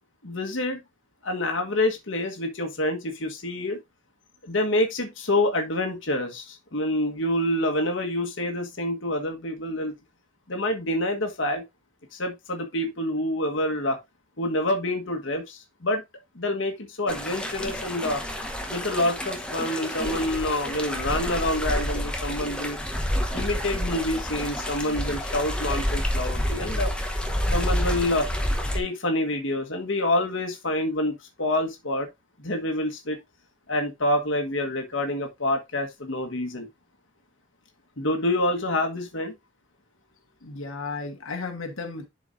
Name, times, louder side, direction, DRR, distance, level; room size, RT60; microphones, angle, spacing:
voice 1, 0.2-0.8 1.2-3.8 4.4-9.9 10.5-11.6 12.1-14.0 14.4-16.0 16.3-18.2 18.7-22.8 23.3-26.9 27.5-28.3 28.7-32.1 32.4-33.2 33.7-36.7 38.0-39.3, left 1 dB, 65° left, 1.4 m, -27 dB
sound 1, 17.1-28.8, equal, 5° left, 1.0 m, -29 dB
voice 2, 40.4-42.1, left 4 dB, 80° left, 1.4 m, -34 dB
11.0 x 4.6 x 2.6 m
head